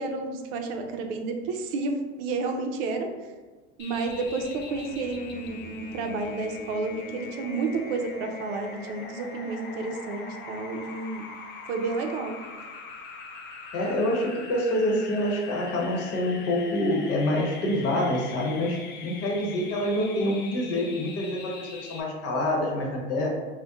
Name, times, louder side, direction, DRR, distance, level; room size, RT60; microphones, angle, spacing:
voice 1, 0.0-3.1 3.8-11.2 11.7-12.4, right 3 dB, 65° right, 4 dB, 0.5 m, -31 dB
sound 1, 3.8-22.0, left 4 dB, 35° left, 0.5 m, -42 dB
voice 2, 13.7-18.8 19.0-23.3, left 1 dB, 50° left, -1 dB, 1.0 m, -26 dB
2.7 x 2.1 x 3.4 m, 1.3 s
hypercardioid pair, 90°, 31 cm